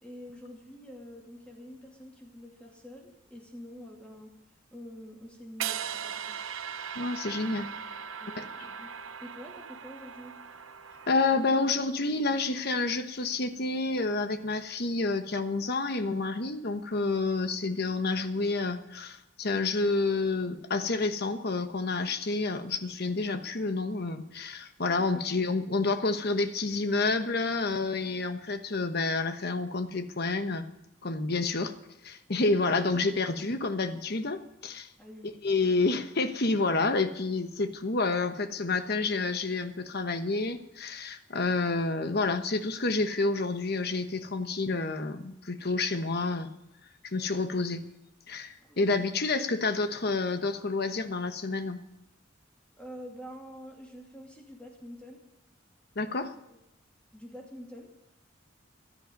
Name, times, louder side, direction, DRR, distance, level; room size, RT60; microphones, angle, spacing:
voice 1, 0.0-4.3 4.7-6.3 8.2-8.9 9.2-10.3 35.0-35.3 48.6-48.8 52.7-55.2 56.5-56.6 57.1-57.9, equal, 5° left, -1 dB, 2.5 m, -46 dB
sound 1, 5.6-11.7, right 8 dB, 90° right, 0.7 m, -39 dB
voice 2, 6.9-7.7 8.3-8.4 11.1-30.7 31.0-31.7 32.0-34.9 35.4-46.5 47.0-47.8 48.3-51.8 56.0-56.3, left 3 dB, 50° left, 8 dB, 1.1 m, -29 dB
16.0 x 12.5 x 5.3 m, 0.86 s
head